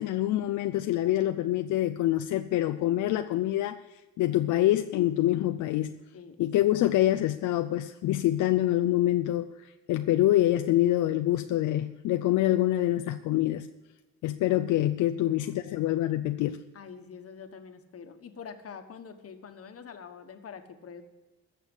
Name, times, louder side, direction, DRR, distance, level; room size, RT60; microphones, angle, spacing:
voice 1, 0.0-3.8 4.2-6.0 6.4-13.7 14.2-16.6, left 14 dB, 80° left, 7 dB, 0.6 m, -26 dB
voice 2, 15.0-15.4 16.7-21.0, left 6 dB, 50° left, 7 dB, 1.4 m, -45 dB
14.0 x 6.7 x 9.9 m, 1.1 s
cardioid pair, 90°, 30 cm